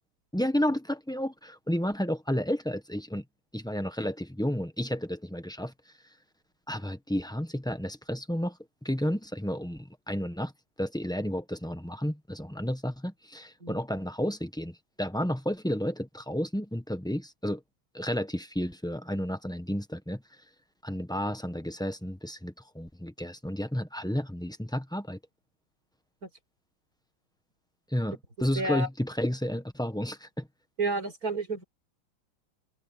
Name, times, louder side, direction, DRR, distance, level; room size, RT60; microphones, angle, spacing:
voice 1, 0.3-3.2 3.5-5.7 6.7-10.5 10.8-17.6 17.9-20.2 20.8-25.2 27.9-30.5, equal, 5° left, 0.6 m, -31 dB
voice 2, 28.6-28.9 30.8-31.6, right 2 dB, 45° right, 5.3 m, -30 dB
omnidirectional pair, 2.2 m